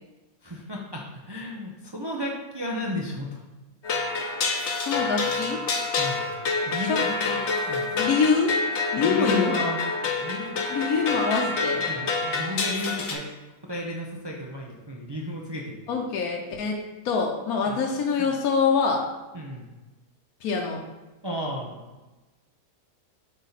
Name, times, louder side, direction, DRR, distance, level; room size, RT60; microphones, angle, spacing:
voice 1, 0.4-3.4 6.0-6.3 6.7-8.0 9.0-9.8 10.2-11.0 11.9-13.3 13.6-15.8 17.6-17.8 18.2-18.3 19.3-19.7 21.2-21.8, left 1 dB, 35° right, -2 dB, 0.4 m, -33 dB
sound 1, 3.8-13.2, left 4 dB, 55° left, 1.0 m, -27 dB
voice 2, 4.8-5.6 6.9-7.0 7.9-8.6 8.9-9.5 10.7-11.9 15.9-19.0 20.4-20.8, left 5 dB, 80° left, 1 dB, 1.2 m, -25 dB
8.1 x 3.6 x 4.0 m, 1.1 s
omnidirectional pair, 1.5 m